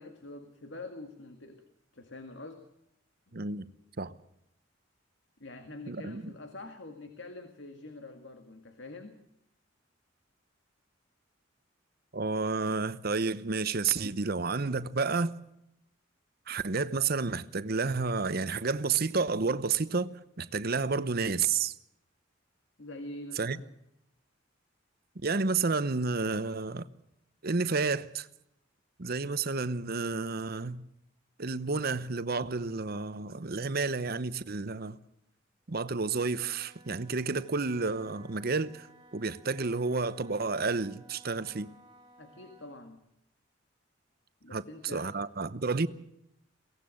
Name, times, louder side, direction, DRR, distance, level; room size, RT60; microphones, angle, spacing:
voice 1, 0.0-1.6 1.9-2.7 3.3-3.4 5.4-9.2 22.8-23.7 42.2-43.1 44.4-45.1, left 2 dB, 65° left, 2.0 m, -45 dB
voice 2, 3.3-3.7 4.0-4.1 5.9-6.3 12.1-15.4 16.5-21.7 23.4-23.6 25.2-26.9 27.4-28.3 29.0-30.8 31.4-35.0 35.7-38.9 39.1-41.7 44.5-45.9, right 4 dB, 50° right, 0.9 m, -30 dB
Wind instrument woodwind instrument, 35.6-42.9, right 1 dB, 20° right, 3.1 m, -58 dB
22.5 x 17.5 x 6.5 m
head